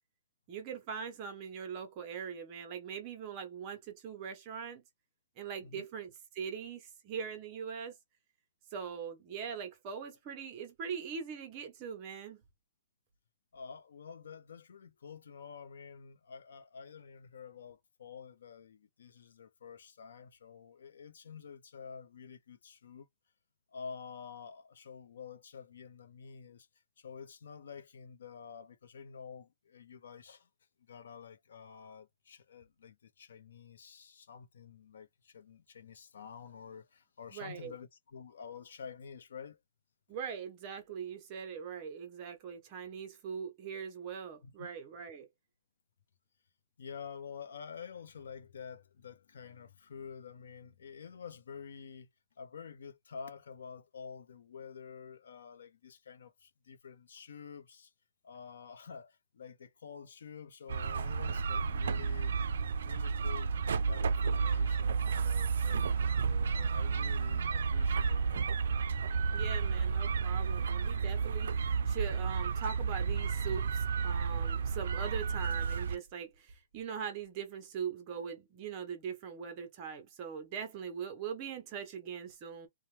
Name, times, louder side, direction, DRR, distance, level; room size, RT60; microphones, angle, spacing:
voice 1, 0.5-4.8 5.4-8.0 8.7-12.4 37.3-37.7 40.1-45.3 69.3-82.7, right 7 dB, 20° right, 0.7 m, -41 dB
voice 2, 13.5-23.1 23.7-26.7 27.0-30.5 30.8-39.6 44.4-44.7 46.8-52.1 52.4-57.9 58.2-62.5 62.8-63.5 63.8-68.5, left 6 dB, 65° left, 0.7 m, -49 dB
sound 1, 60.7-76.0, right 5 dB, 60° right, 0.3 m, -31 dB
2.8 x 2.1 x 3.1 m
hypercardioid pair, 175°, 0 cm